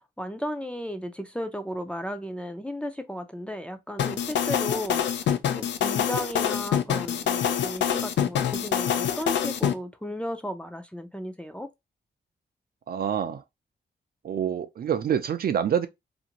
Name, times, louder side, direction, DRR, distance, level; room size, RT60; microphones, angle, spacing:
voice 1, 0.2-5.3 5.6-11.7, equal, 5° left, 0.4 m, -34 dB
sound 1, 4.0-9.7, left 9 dB, 85° left, 0.4 m, -25 dB
voice 2, 12.9-13.4 14.2-15.9, right 8 dB, 60° right, 0.4 m, -26 dB
2.5 x 2.5 x 2.8 m
wide cardioid pair, 95°, 18 cm